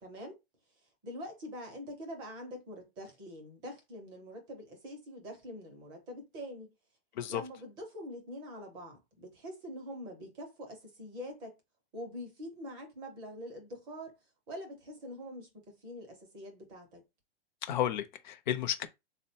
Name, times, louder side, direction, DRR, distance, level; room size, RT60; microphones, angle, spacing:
voice 1, 0.0-0.4 1.0-6.7 7.3-11.5 11.9-14.1 14.5-17.0, equal, 15° right, 0.5 m, -44 dB
voice 2, 17.6-18.9, left 11 dB, 50° left, 0.5 m, -32 dB
3.8 x 2.1 x 2.7 m
hypercardioid pair, 165°, 31 cm